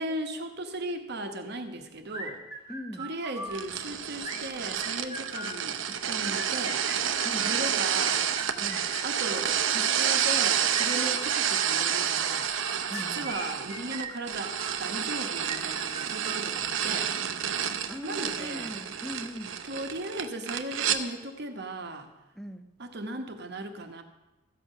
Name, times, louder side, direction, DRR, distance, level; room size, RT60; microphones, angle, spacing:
voice 1, 0.0-2.4 3.0-6.8 7.4-8.3 9.0-12.5 12.9-14.5 14.8-17.1 17.7-18.7 19.7-22.1 22.8-24.0, right 1 dB, 55° right, 6 dB, 1.0 m, -37 dB
sound 1, 2.1-3.6 4.2-5.6 6.1-7.7 8.2-9.8 10.3-11.8 12.5-14.8 15.4-16.9, right 2 dB, 15° right, 1.2 m, -40 dB
voice 2, 2.7-3.1 7.2-7.5 8.6-8.8 12.9-13.3 17.9-19.6 22.4-22.7, equal, ahead, 10 dB, 0.5 m, -40 dB
sound 2, 3.5-21.0, right 8 dB, 70° right, 0.7 m, -29 dB
13.5 x 8.0 x 5.5 m, 1.1 s
head